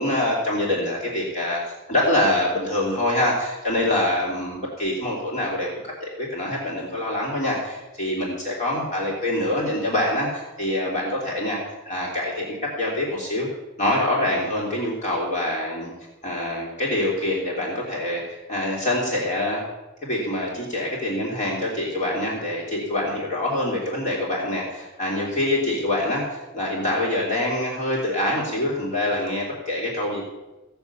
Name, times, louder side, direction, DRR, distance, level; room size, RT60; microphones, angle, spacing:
voice 1, 0.0-1.6 1.9-13.5 13.8-15.9 16.2-19.7 20.0-30.2, left 1 dB, 35° left, -4 dB, 2.9 m, -25 dB
16.0 x 7.0 x 7.1 m, 1.1 s
head